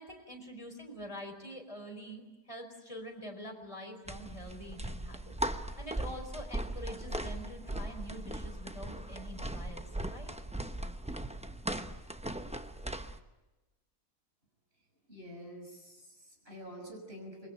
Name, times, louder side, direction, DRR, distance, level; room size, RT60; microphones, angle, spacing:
voice 1, 0.0-10.3, equal, 20° left, 2 dB, 4.8 m, -46 dB
sound 1, 4.1-13.2, right 1 dB, 5° right, 0.5 m, -39 dB
voice 2, 15.1-17.5, equal, 35° right, 1 dB, 6.5 m, -47 dB
27.5 x 22.5 x 9.2 m, 1.1 s
omnidirectional pair, 1.7 m